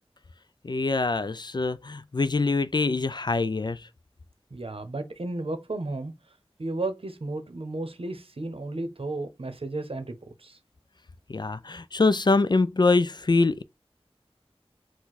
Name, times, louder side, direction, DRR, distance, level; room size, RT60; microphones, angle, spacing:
voice 1, 0.6-3.8 11.3-13.6, left 3 dB, 45° left, 0.3 m, -24 dB
voice 2, 4.5-6.1 6.6-10.1 10.4-10.6, right 2 dB, 60° right, 0.9 m, -33 dB
4.5 x 2.2 x 4.0 m
wide cardioid pair, 40°, 11 cm